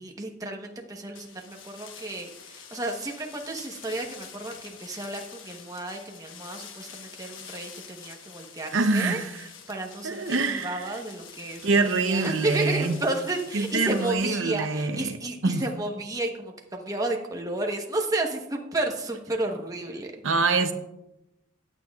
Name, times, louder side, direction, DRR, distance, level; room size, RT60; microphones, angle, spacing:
voice 1, 0.0-20.1, right 2 dB, 20° right, 2 dB, 1.0 m, -32 dB
sound 1, 1.1-14.1, left 7 dB, 80° left, 1.1 m, -46 dB
voice 2, 8.7-9.5 10.0-10.9 11.6-13.0 13.5-15.2 15.4-15.6 20.2-20.7, right 3 dB, 75° right, 8 dB, 0.7 m, -25 dB
15.0 x 9.4 x 2.4 m, 0.91 s
head